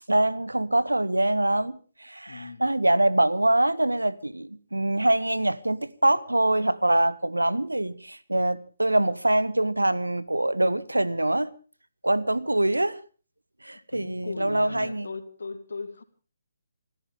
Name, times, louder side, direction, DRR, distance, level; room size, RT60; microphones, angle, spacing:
voice 1, 0.1-11.5 12.0-13.0 13.6-15.1, right 1 dB, 80° right, 1.1 m, -24 dB
voice 2, 2.3-2.7 13.9-16.0, left 4 dB, 60° left, 2.4 m, -38 dB
27.0 x 14.0 x 3.6 m
figure-of-eight pair, 140°, 0 cm